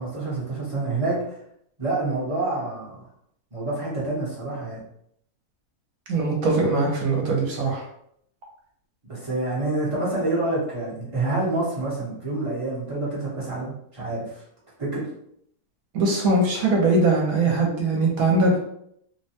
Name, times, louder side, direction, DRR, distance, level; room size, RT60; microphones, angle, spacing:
voice 1, 0.0-1.4 1.8-3.0 3.5-4.8 9.1-14.4 14.8-15.1, right 2 dB, 30° right, -7 dB, 0.7 m, -27 dB
voice 2, 6.1-7.8 15.9-18.6, right 2 dB, 65° right, -1 dB, 1.1 m, -21 dB
3.3 x 2.1 x 2.8 m, 0.72 s
omnidirectional pair, 1.6 m